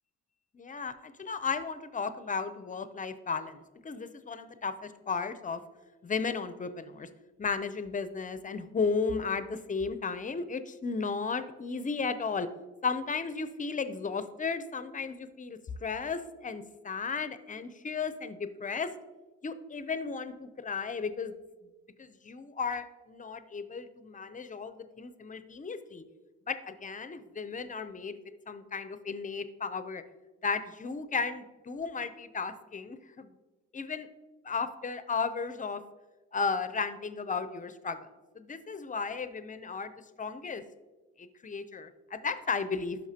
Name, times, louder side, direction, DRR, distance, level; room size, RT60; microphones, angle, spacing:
voice 1, 0.5-5.6 6.0-7.1 7.4-12.5 12.8-18.9 19.4-21.3 22.0-26.0 26.5-28.2 28.5-30.0 30.4-33.3 33.7-34.1 34.4-35.8 36.3-38.1 38.4-40.6 41.2-43.0, left 5 dB, 25° left, 11 dB, 0.5 m, -34 dB
11.0 x 5.9 x 2.8 m, 1.2 s
cardioid pair, 90°, 30 cm